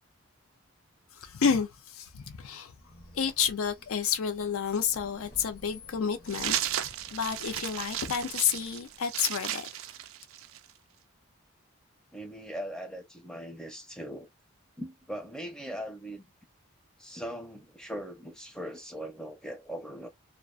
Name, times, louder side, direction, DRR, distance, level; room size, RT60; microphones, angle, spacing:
voice 1, 1.1-2.7 3.1-9.7, left 7 dB, 90° left, 0.5 m, -30 dB
Squeak, 2.8-9.2, left 1 dB, 45° left, 0.8 m, -53 dB
sound 1, 6.3-10.7, right 12 dB, 80° right, 0.3 m, -34 dB
voice 2, 12.1-14.3 14.8-16.3 17.0-20.1, equal, 5° left, 0.4 m, -40 dB
2.4 x 2.2 x 2.4 m
head